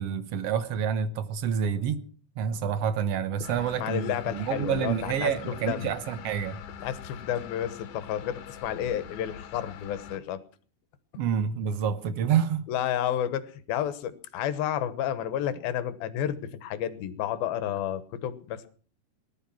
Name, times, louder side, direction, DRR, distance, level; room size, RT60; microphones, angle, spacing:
voice 1, 0.0-2.0 2.4-6.6 11.1-12.7, right 8 dB, 75° right, 1.4 m, -28 dB
sound 1, 3.4-10.2, left 8 dB, 70° left, 2.9 m, -43 dB
voice 2, 3.8-5.9 6.8-10.4 12.7-18.7, left 10 dB, 85° left, 3.0 m, -31 dB
19.0 x 12.5 x 5.9 m
omnidirectional pair, 4.2 m